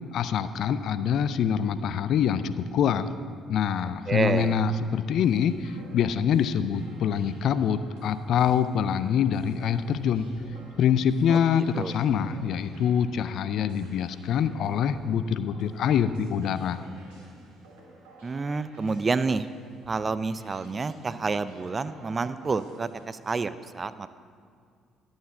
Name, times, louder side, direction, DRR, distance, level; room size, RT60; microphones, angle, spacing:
voice 1, 0.1-3.1 3.5-10.3 10.8-16.9, left 8 dB, 60° left, 13 dB, 0.4 m, -25 dB
voice 2, 4.1-4.6 11.3-11.4 11.8-11.9 18.2-19.5 19.9-24.1, right 4 dB, 35° right, 14 dB, 0.4 m, -29 dB
sound 1, 4.6-23.0, right 1 dB, 75° right, 2.0 m, -53 dB
11.5 x 6.3 x 7.2 m, 2.1 s
hypercardioid pair, 50°, 0 cm